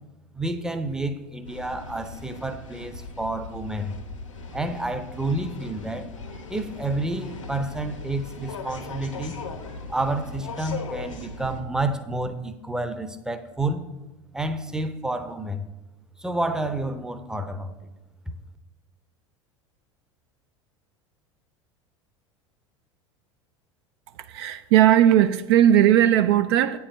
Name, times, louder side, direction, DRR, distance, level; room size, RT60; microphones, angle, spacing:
voice 1, 0.3-3.9 4.5-6.1 6.5-9.4 9.9-13.8 14.3-15.7 16.2-17.9 18.3-18.4, right 2 dB, 5° right, 0.7 m, -29 dB
sound 1, 1.4-11.6, left 3 dB, 80° left, 1.3 m, -39 dB
voice 2, 24.3-26.8, right 11 dB, 55° right, 0.5 m, -18 dB
8.6 x 4.7 x 6.7 m
figure-of-eight pair, 75°, 16 cm